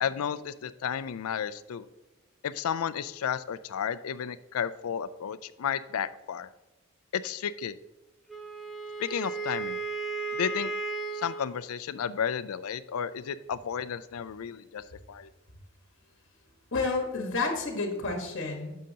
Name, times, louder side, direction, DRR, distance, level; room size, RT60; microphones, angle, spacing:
voice 1, 0.0-1.9 2.4-6.5 7.1-7.8 9.0-9.8 10.3-10.7 11.1-15.3, left 8 dB, 85° left, 15 dB, 0.4 m, -32 dB
Wind instrument woodwind instrument, 8.3-11.5, right 3 dB, ahead, 0.7 m, -34 dB
voice 2, 16.7-18.8, left 3 dB, 60° left, 3 dB, 1.4 m, -30 dB
9.0 x 6.4 x 2.8 m, 1.0 s
head